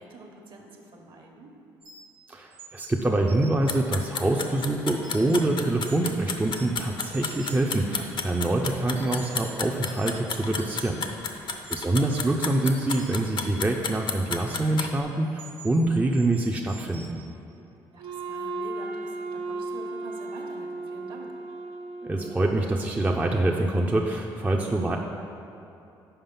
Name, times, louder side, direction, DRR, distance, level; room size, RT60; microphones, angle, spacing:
voice 1, 0.0-1.6 11.3-12.0 17.9-21.3, right 2 dB, 50° right, 2 dB, 1.2 m, -46 dB
sound 1, 1.8-2.2 2.5-3.7 4.0-5.4 5.8-6.1 6.4-7.7 8.0-8.4 9.0-11.0 11.5-11.7 12.3-14.5 15.2-17.1, right 4 dB, 90° right, 1.3 m, -48 dB
voice 2, 2.3-11.3 11.7-17.2 22.0-25.0, right 2 dB, 15° right, 0 dB, 0.5 m, -25 dB
sound 2, 3.7-14.9, left 5 dB, 50° left, 0.6 m, -31 dB
Wind instrument woodwind instrument, 18.0-22.7, right 3 dB, 70° right, 0.6 m, -35 dB
5.8 x 4.9 x 5.5 m, 2.9 s
supercardioid pair, 65°, 11 cm